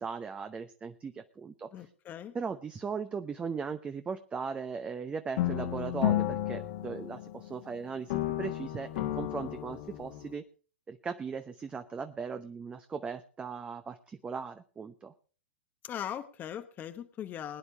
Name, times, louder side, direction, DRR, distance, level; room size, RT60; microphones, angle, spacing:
voice 1, 0.0-1.9 2.3-10.4 10.9-15.1, right 5 dB, 15° right, 8 dB, 0.8 m, -38 dB
voice 2, 1.7-2.3 15.8-17.6, left 10 dB, 30° left, 8 dB, 1.0 m, -40 dB
sound 1, 5.4-7.7 8.1-10.4, left 12 dB, 55° left, 1.6 m, -32 dB
21.5 x 9.9 x 3.5 m, 0.39 s
hypercardioid pair, 110°, 7 cm